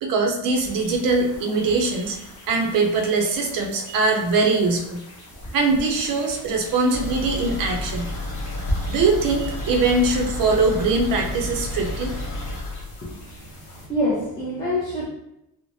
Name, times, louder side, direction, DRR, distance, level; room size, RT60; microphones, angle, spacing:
voice 1, 0.0-2.2 2.5-5.0 5.5-8.1 8.8-12.1, right 3 dB, 45° right, 2 dB, 0.5 m, -22 dB
sound 1, 0.5-13.9, equal, 40° left, 0.9 m, -40 dB
sound 2, 6.9-13.6 13.9-14.0 14.4-14.5, left 1 dB, 55° left, 1.2 m, -31 dB
voice 2, 13.0-15.1, left 1 dB, 10° left, -10 dB, 0.5 m, -27 dB
3.0 x 2.1 x 2.6 m, 0.85 s
cardioid pair, 175°, 48 cm